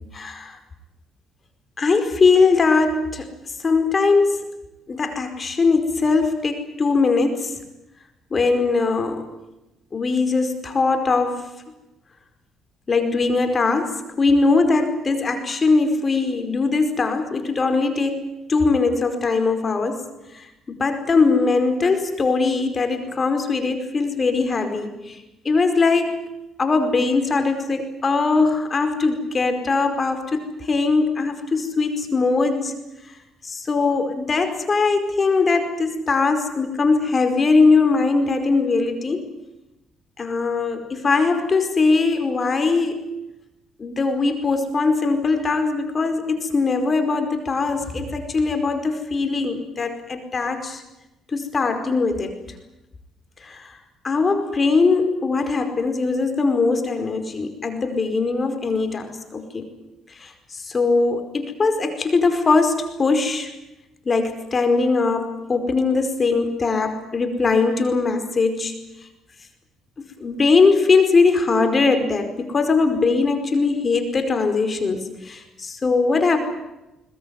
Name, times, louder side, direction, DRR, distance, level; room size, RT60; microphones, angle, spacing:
voice 1, 0.1-0.6 1.8-3.3 3.6-4.4 4.9-7.5 8.3-9.3 9.9-11.4 12.9-20.0 20.3-25.1 25.4-26.2 26.6-32.7 33.4-39.2 40.2-43.0 43.8-50.8 51.3-52.4 53.4-53.7 54.0-59.7 60.2-60.3 60.7-63.5 64.0-68.7 70.0-76.4, left 4 dB, 35° left, 7 dB, 4.9 m, -21 dB
21.0 x 21.0 x 9.6 m, 0.96 s
supercardioid pair, 70°, 0 cm